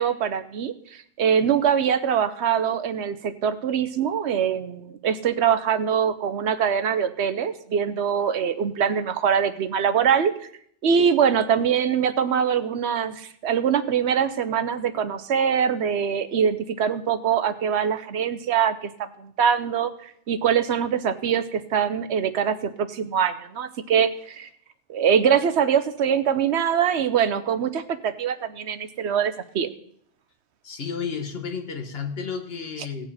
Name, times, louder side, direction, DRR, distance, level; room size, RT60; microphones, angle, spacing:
voice 1, 0.0-10.3 10.8-24.5 24.9-29.7, right 7 dB, 75° right, 11 dB, 1.0 m, -23 dB
voice 2, 30.6-33.1, left 6 dB, 60° left, 4 dB, 1.5 m, -32 dB
17.5 x 7.3 x 4.2 m, 0.65 s
omnidirectional pair, 1.2 m